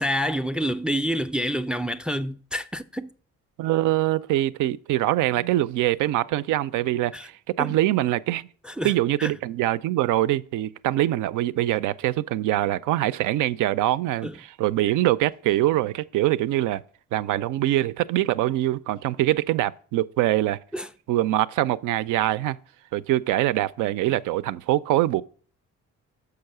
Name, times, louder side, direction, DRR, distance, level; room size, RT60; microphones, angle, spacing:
voice 1, 0.0-3.1 7.1-7.3 7.6-7.8 8.6-8.9 9.2-9.3 14.2-14.4 20.7-20.9, equal, 5° right, 0.3 m, -28 dB
voice 2, 3.6-8.5 8.8-16.8 17.1-20.6 21.1-22.6 22.9-25.2, right 14 dB, 85° right, 0.4 m, -24 dB
6.7 x 4.8 x 6.5 m
cardioid pair, 90°, 30 cm